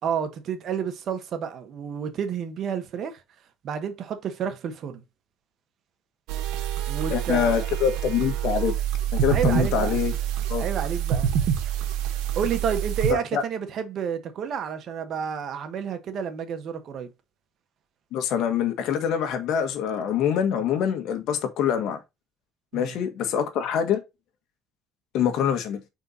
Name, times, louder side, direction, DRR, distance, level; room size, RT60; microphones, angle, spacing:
voice 1, 0.0-3.2 3.6-5.0 6.9-7.7 9.3-10.0 10.5-11.3 12.3-17.1 22.7-23.0, right 7 dB, 60° right, 1.4 m, -30 dB
sound 1, 6.3-13.1, right 9 dB, 90° right, 1.4 m, -26 dB
voice 2, 7.1-8.7 9.1-10.1 10.5-10.6 13.1-13.4 18.1-22.0 22.7-24.0 25.1-25.8, left 8 dB, 75° left, 1.5 m, -25 dB
5.4 x 4.5 x 4.1 m
cardioid pair, 100°, 0 cm